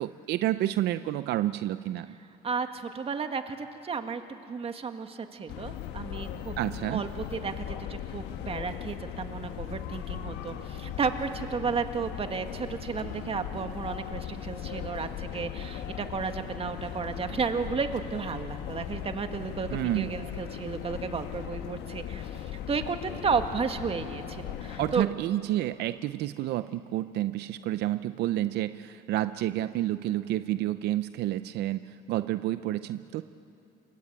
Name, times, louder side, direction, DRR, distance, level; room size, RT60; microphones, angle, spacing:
voice 1, 0.0-2.1 6.6-7.0 19.7-20.1 24.8-33.2, right 14 dB, 75° right, 12 dB, 0.6 m, -29 dB
voice 2, 2.4-6.6 6.9-25.1, right 5 dB, 35° right, 7 dB, 1.8 m, -33 dB
sound 1, 5.5-25.1, left 10 dB, 85° left, 1.4 m, -38 dB
27.5 x 22.5 x 8.8 m, 2.8 s
cardioid pair, 110°, 17 cm